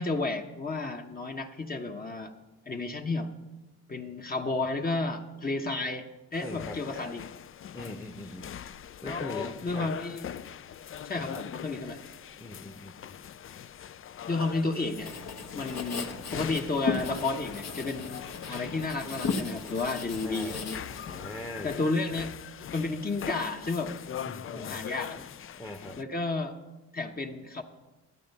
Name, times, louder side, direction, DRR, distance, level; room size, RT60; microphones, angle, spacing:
voice 1, 0.0-2.3 2.7-3.3 3.9-7.3 9.0-10.2 11.0-12.0 14.3-15.1 15.5-20.8 21.6-22.3 22.7-23.9 24.5-25.2 26.0-26.6 26.9-27.6, left 3 dB, 30° left, 3 dB, 1.0 m, -32 dB
sound 1, 6.3-26.0, left 9 dB, 45° left, 0.4 m, -42 dB
voice 2, 6.4-6.8 7.7-8.5 9.0-9.9 11.2-11.4 12.4-13.2 20.2-20.6 21.1-21.7 24.3-24.8 25.1-25.3 25.6-26.0, left 1 dB, 10° left, 3 dB, 0.9 m, -41 dB
Writing, 15.0-21.4, left 4 dB, 65° left, 1.2 m, -36 dB
12.5 x 8.0 x 5.4 m, 1.1 s
cardioid pair, 75°, 29 cm